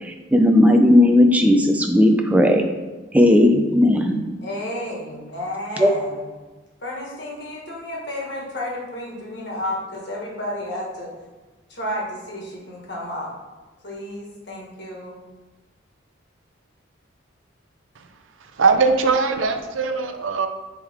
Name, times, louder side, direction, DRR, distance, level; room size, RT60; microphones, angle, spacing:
voice 1, 0.0-2.6 3.1-4.2 5.8-5.9, left 1 dB, 5° right, 4 dB, 0.4 m, -15 dB
voice 2, 4.4-6.3 6.8-11.1 11.7-13.3 13.8-15.2, left 1 dB, 60° left, -3 dB, 1.7 m, -31 dB
voice 3, 18.6-20.5, right 4 dB, 80° right, 7 dB, 0.6 m, -20 dB
7.6 x 3.6 x 3.5 m, 1.2 s
head